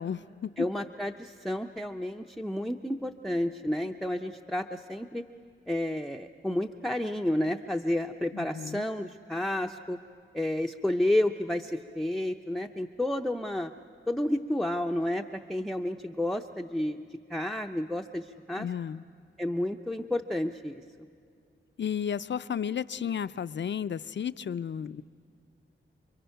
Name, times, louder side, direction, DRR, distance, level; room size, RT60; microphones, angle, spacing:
voice 1, 0.0-0.7 8.3-8.8 18.6-19.0 21.8-25.0, left 8 dB, 60° left, 15 dB, 0.5 m, -33 dB
voice 2, 0.6-5.2 5.7-10.0 10.3-13.7 14.1-15.2 15.5-18.7 19.4-20.8, left 1 dB, ahead, 4 dB, 0.5 m, -31 dB
29.5 x 23.0 x 5.7 m, 2.3 s
wide cardioid pair, 90°, 21 cm